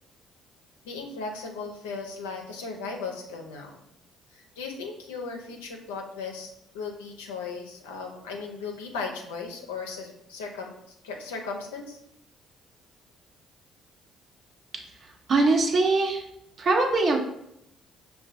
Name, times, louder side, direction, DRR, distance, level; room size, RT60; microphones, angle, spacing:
voice 1, 0.8-3.8 4.3-12.0, left 4 dB, 90° left, 2 dB, 0.5 m, -37 dB
voice 2, 15.3-16.2 16.6-17.2, right 3 dB, 55° right, 2 dB, 0.7 m, -22 dB
5.4 x 2.2 x 2.5 m, 0.79 s
hypercardioid pair, 55°, 0 cm